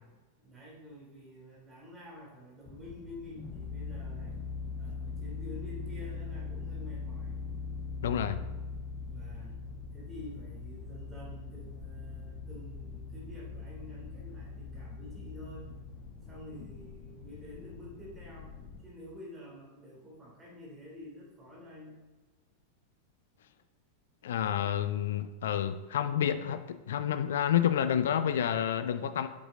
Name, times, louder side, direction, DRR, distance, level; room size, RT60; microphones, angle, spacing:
voice 1, 0.4-4.4 4.8-7.4 9.0-9.6 9.9-15.7 16.2-18.5 18.8-22.0, left 1 dB, 15° right, -5 dB, 3.0 m, -49 dB
sound 1, 2.7-18.8, left 4 dB, 35° left, 1.1 m, -41 dB
voice 2, 8.0-8.4 24.2-29.3, left 9 dB, 60° left, 11 dB, 0.5 m, -29 dB
9.5 x 7.9 x 3.8 m, 1.2 s
figure-of-eight pair, 90°, 0 cm